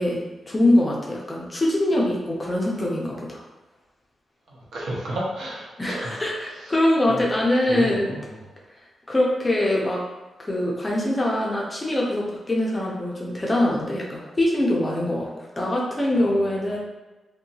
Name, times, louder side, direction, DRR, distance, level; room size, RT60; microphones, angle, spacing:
voice 1, 0.0-3.4 5.8-8.2 9.1-10.0 10.4-16.8, left 1 dB, 15° left, -3 dB, 0.5 m, -23 dB
voice 2, 4.5-6.7 7.1-7.3 7.7-8.5 16.2-16.5, right 1 dB, 85° right, -4 dB, 0.7 m, -33 dB
2.7 x 2.2 x 2.7 m, 1.1 s
wide cardioid pair, 170°, 0 cm